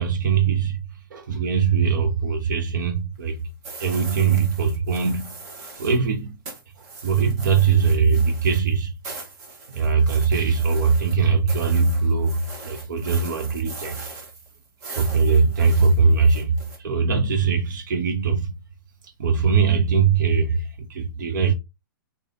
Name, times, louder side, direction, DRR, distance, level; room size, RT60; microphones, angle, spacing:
voice 1, 0.0-3.4 3.8-5.4 5.8-6.4 6.8-9.3 9.7-14.0 14.9-18.5 19.2-21.5, right 5 dB, 60° right, 0.8 m, -21 dB
sound 1, 3.6-6.1 6.5-16.8, right 3 dB, 45° right, 1.5 m, -40 dB
3.3 x 2.9 x 3.6 m
hypercardioid pair, 125°, 12 cm